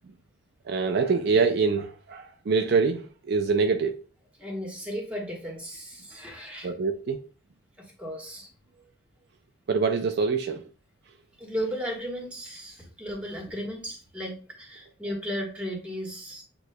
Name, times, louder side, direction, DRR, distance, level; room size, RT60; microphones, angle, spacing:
voice 1, 0.7-4.0 6.6-7.2 9.7-10.6, right 4 dB, 55° right, 0.4 m, -25 dB
voice 2, 4.4-6.7 7.8-8.5 11.4-16.4, equal, 5° right, 1.3 m, -35 dB
8.0 x 3.0 x 2.2 m
head